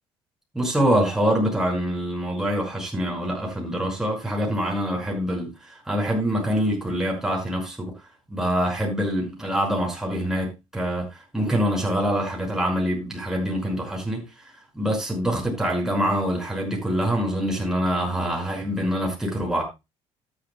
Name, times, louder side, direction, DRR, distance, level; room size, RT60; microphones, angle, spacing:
voice 1, 0.5-7.9 8.3-19.6, equal, 5° right, 5.8 m, -25 dB
13.0 x 10.5 x 2.4 m
cardioid pair, 105°, 11 cm